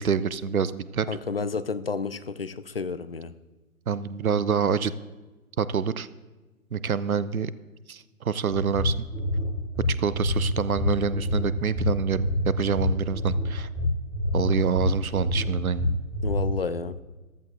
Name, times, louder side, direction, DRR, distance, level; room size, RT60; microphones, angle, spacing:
voice 1, 0.0-1.1 3.9-4.9 5.6-6.1 6.7-7.5 7.9-9.1 10.0-13.7 14.3-16.0, right 6 dB, 70° right, 17 dB, 0.6 m, -26 dB
voice 2, 1.1-3.3 16.2-17.0, left 5 dB, 45° left, 13 dB, 0.4 m, -31 dB
sound 1, 8.5-16.4, left 2 dB, 5° left, 2.7 m, -27 dB
14.0 x 13.0 x 2.6 m, 1.2 s
figure-of-eight pair, 140°, 44 cm